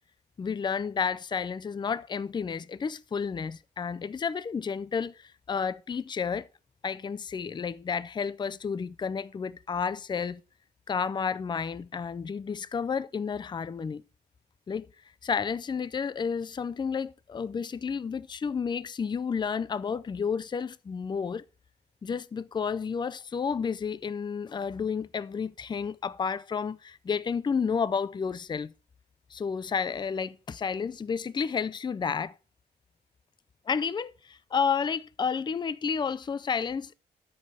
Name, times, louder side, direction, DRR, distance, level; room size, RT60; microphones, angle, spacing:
voice 1, 0.4-6.5 6.8-10.4 10.9-14.0 14.7-14.9 15.2-21.4 22.0-28.7 29.3-32.3 33.7-36.9, left 6 dB, 25° left, 0.4 m, -31 dB
12.5 x 5.4 x 4.8 m
wide cardioid pair, 135°, 18 cm